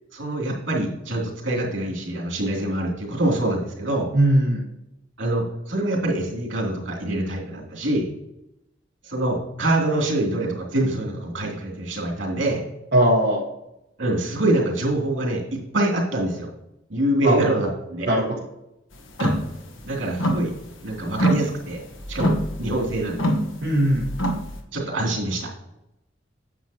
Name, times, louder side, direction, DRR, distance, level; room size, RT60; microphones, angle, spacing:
voice 1, 0.1-4.1 5.2-8.1 9.0-12.6 14.0-16.5 16.9-18.1 19.2-19.4 19.8-20.5 20.8-21.8 22.1-23.3 24.3-24.4 24.7-25.5, right 1 dB, 75° right, -1 dB, 2.9 m, -25 dB
voice 2, 4.1-4.7 12.9-13.4 17.2-17.4 18.1-18.2 23.6-24.1, right 1 dB, 55° right, -5 dB, 1.5 m, -19 dB
sound 1, 19.1-19.5 19.8-20.8 21.1-24.6, equal, 85° left, 1.3 m, -25 dB
9.6 x 7.5 x 2.9 m, 0.87 s
head